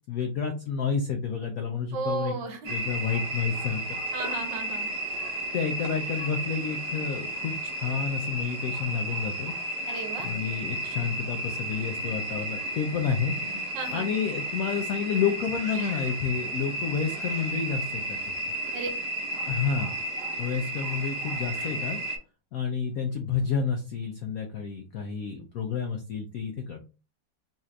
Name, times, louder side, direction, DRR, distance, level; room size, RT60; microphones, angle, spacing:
voice 1, 0.1-2.3 2.7-4.0 5.5-9.5 10.2-18.2 19.4-19.9 20.4-22.0 22.5-26.8, left 6 dB, 75° left, 4 dB, 0.8 m, -30 dB
voice 2, 1.9-2.7 4.1-4.9 9.9-10.3 13.7-14.1 18.7-18.9, right 3 dB, 70° right, 4 dB, 1.5 m, -34 dB
sound 1, 2.6-22.2, right 1 dB, 50° right, 1.2 m, -33 dB
4.2 x 2.4 x 3.1 m, 0.32 s
omnidirectional pair, 2.1 m